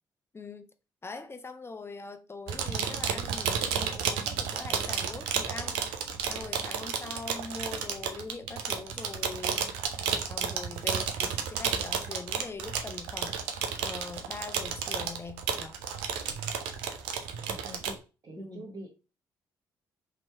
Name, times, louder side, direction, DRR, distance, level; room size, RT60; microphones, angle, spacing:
voice 1, 0.3-0.7 1.0-5.8 6.3-9.7 10.1-15.8 18.4-18.7, left 3 dB, 25° left, 0.7 m, -42 dB
sound 1, 2.5-18.0, right 7 dB, 80° right, 0.5 m, -32 dB
voice 2, 17.5-18.9, right 1 dB, 45° right, 1.2 m, -44 dB
3.0 x 2.9 x 4.5 m
hypercardioid pair, 50°, 10 cm